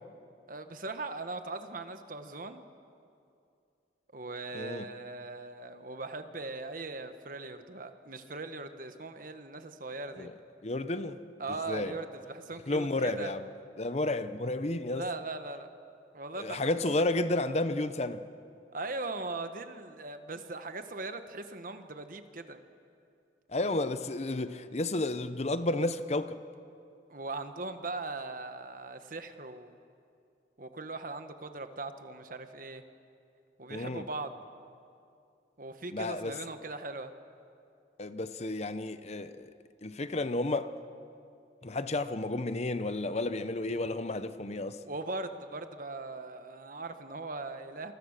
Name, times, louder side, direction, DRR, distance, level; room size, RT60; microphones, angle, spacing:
voice 1, 0.5-2.6 4.1-10.3 11.4-13.3 14.9-15.7 16.1-16.7 18.7-22.6 27.1-29.8 30.6-32.8 33.6-34.3 35.6-37.1 44.8-47.9, right 3 dB, 50° right, 1.4 m, -40 dB
voice 2, 4.5-4.9 10.2-10.3 10.6-11.2 11.7-11.9 12.7-13.5 13.8-15.1 16.4-18.2 23.5-26.4 33.7-34.1 35.9-36.4 38.0-39.5 39.8-40.7 41.6-44.8, left 2 dB, 35° left, 0.8 m, -32 dB
28.5 x 23.5 x 6.7 m
head